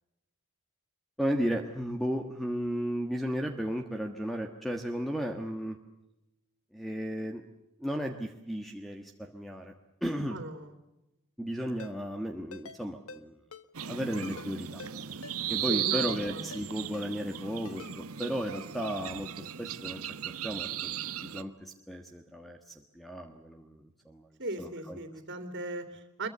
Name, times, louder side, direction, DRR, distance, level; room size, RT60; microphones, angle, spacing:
voice 1, 1.2-5.8 6.7-7.5 7.8-9.7 10.0-10.4 11.4-13.4 13.9-14.8 15.5-20.1 20.4-24.3 24.6-25.0, equal, ahead, 4 dB, 1.5 m, -34 dB
voice 2, 10.3-10.7 15.7-16.4 24.4-26.3, right 2 dB, 50° right, 7 dB, 3.0 m, -38 dB
Ringtone, 11.8-11.9 12.5-12.8 13.1-13.2 13.5-13.6 14.2-14.5 14.8-14.9 15.2-15.4 15.9-16.2 16.5-16.6 16.9-17.1 17.6-17.9 18.2-18.3, left 3 dB, 80° left, 1.6 m, -46 dB
sound 1, 13.7-21.4, right 10 dB, 85° right, 1.2 m, -36 dB
25.0 x 23.0 x 6.9 m, 0.96 s
head